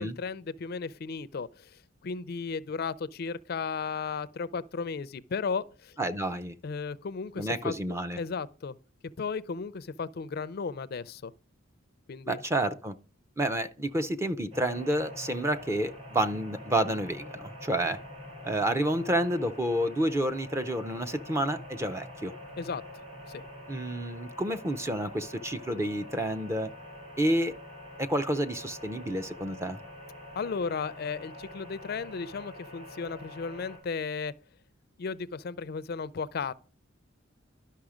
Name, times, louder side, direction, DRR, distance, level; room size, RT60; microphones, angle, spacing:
voice 1, 0.0-1.7 2.0-5.9 6.6-7.7 8.2-8.7 9.2-11.3 12.1-12.4 22.6-22.8 23.3-23.4 30.4-34.3 35.0-36.5, left 5 dB, 50° left, 0.4 m, -35 dB
voice 2, 6.0-6.6 7.4-8.2 12.3-13.0 13.4-18.0 18.4-22.3 23.7-26.7 27.2-27.5 28.0-29.8, right 1 dB, 15° right, 0.5 m, -29 dB
sound 1, 14.5-33.8, left 1 dB, 35° right, 4.9 m, -45 dB
11.5 x 5.6 x 4.9 m
head